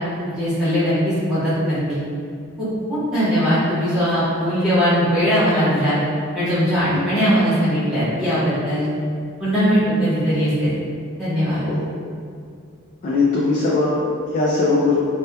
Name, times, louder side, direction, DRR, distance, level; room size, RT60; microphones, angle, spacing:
voice 1, 0.2-2.0 2.6-6.0 6.3-8.9 9.4-10.7 11.2-11.6, equal, 5° right, -14 dB, 0.8 m, -20 dB
voice 2, 13.0-14.9, left 3 dB, 40° left, -6 dB, 0.3 m, -20 dB
2.9 x 2.1 x 2.2 m, 2.3 s
head